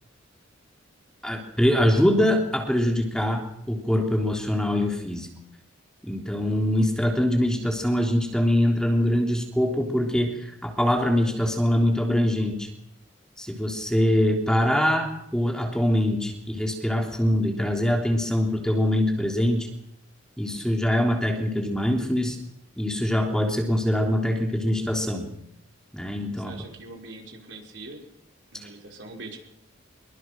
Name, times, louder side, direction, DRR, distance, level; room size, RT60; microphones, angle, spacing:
voice 1, 1.2-5.3 6.0-12.7 13.4-19.7 20.4-22.4 22.8-25.3 25.9-26.5 28.6-28.7, equal, 5° left, 1 dB, 3.4 m, -23 dB
voice 2, 26.4-28.0 28.5-29.4, right 2 dB, 65° right, 1 dB, 5.8 m, -42 dB
25.0 x 23.0 x 6.3 m, 0.78 s
head